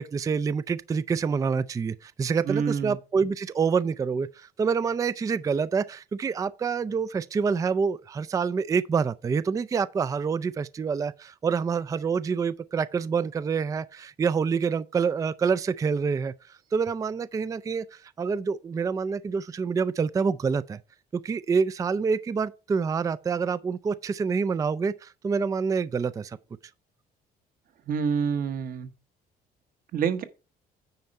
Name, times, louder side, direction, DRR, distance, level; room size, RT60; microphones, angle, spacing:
voice 1, 0.0-20.8 21.1-26.4, right 5 dB, 20° right, 0.3 m, -27 dB
voice 2, 2.4-3.0 27.9-28.9 29.9-30.2, right 6 dB, 60° right, 1.2 m, -27 dB
9.4 x 4.4 x 5.3 m
cardioid pair, 110°, 17 cm